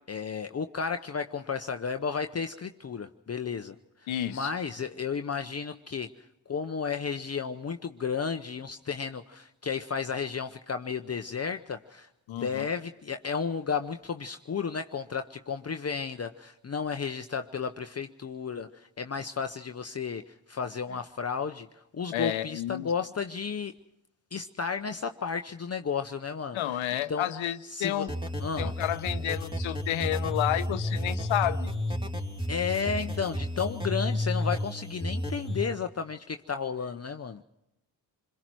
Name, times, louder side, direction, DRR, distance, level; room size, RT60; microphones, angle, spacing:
voice 1, 0.0-3.8 4.0-23.7 24.3-27.3 27.7-28.0 28.4-28.7 32.5-37.4, left 6 dB, 35° left, 7 dB, 0.8 m, -33 dB
voice 2, 4.1-4.5 12.3-12.7 22.1-22.9 26.5-28.1 28.6-31.7, left 12 dB, 80° left, 11 dB, 0.8 m, -30 dB
sound 1, 28.1-35.6, left 1 dB, 10° right, 3.0 m, -32 dB
27.0 x 22.0 x 4.6 m, 0.90 s
supercardioid pair, 55°, 46 cm